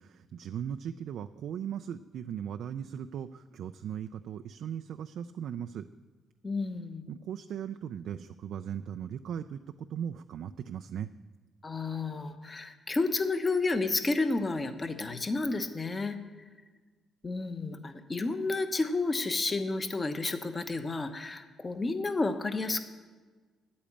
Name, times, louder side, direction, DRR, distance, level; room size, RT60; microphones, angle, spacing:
voice 1, 0.0-5.9 7.1-11.1, right 9 dB, 70° right, 8 dB, 0.4 m, -38 dB
voice 2, 6.4-7.0 11.6-16.2 17.2-22.8, left 3 dB, 25° left, 8 dB, 1.1 m, -31 dB
10.0 x 8.6 x 8.6 m, 1.4 s
cardioid pair, 90°, 0 cm